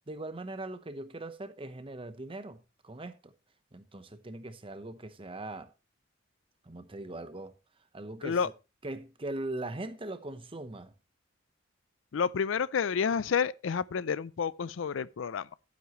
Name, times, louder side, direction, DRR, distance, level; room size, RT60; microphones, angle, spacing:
voice 1, 0.1-3.3 3.7-5.7 6.6-7.5 7.9-8.4 8.8-10.9, right 2 dB, 30° right, 0.9 m, -40 dB
voice 2, 12.1-15.6, left 6 dB, 75° left, 0.4 m, -30 dB
11.5 x 9.5 x 3.1 m
head